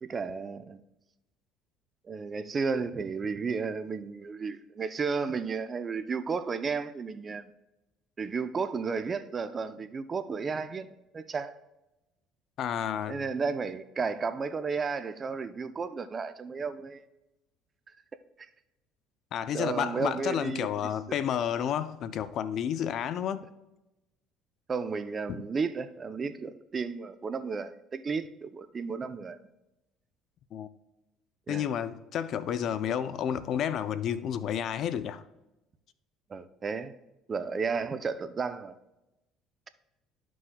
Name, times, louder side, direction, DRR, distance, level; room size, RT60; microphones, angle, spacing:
voice 1, 0.0-0.8 2.1-7.5 8.2-10.9 11.1-11.5 13.1-17.0 19.5-20.9 24.7-29.4 31.5-31.6 36.3-36.9 37.3-38.7, right 5 dB, 35° right, 0.6 m, -33 dB
voice 2, 12.6-13.2 19.3-23.4 25.3-25.4 30.5-30.7 31.5-35.2, left 9 dB, 60° left, 0.5 m, -31 dB
13.0 x 6.1 x 2.3 m
supercardioid pair, 85°, 0 cm